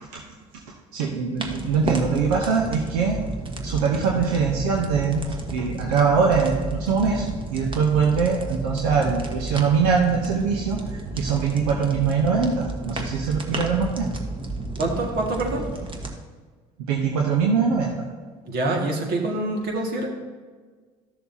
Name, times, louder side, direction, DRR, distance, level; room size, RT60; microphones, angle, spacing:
voice 1, 0.9-3.2 3.6-14.1 16.9-17.9, right 5 dB, 80° right, 0 dB, 0.9 m, -22 dB
sound 1, 1.4-16.1, right 2 dB, 25° right, 1.4 m, -32 dB
voice 2, 14.8-15.6 18.5-20.1, right 2 dB, 55° right, 1 dB, 1.9 m, -25 dB
13.0 x 6.8 x 2.8 m, 1.5 s
hypercardioid pair, 65°, 19 cm